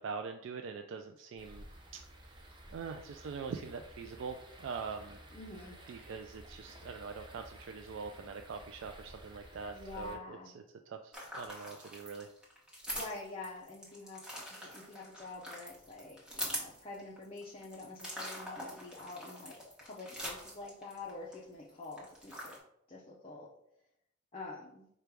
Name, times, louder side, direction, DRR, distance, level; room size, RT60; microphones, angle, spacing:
voice 1, 0.0-1.7 1.9-5.2 5.9-12.3, right 5 dB, 60° right, 5 dB, 0.3 m, -43 dB
sound 1, 1.4-10.2, right 1 dB, 20° right, 0.7 m, -53 dB
voice 2, 5.3-5.8 9.5-10.6 12.9-14.2 14.5-22.6 22.9-23.5 24.3-24.9, left 3 dB, 30° left, -5 dB, 0.6 m, -47 dB
sound 2, 11.1-21.3 21.7-22.6, equal, 5° right, 1.0 m, -44 dB
5.0 x 2.3 x 4.6 m, 0.75 s
head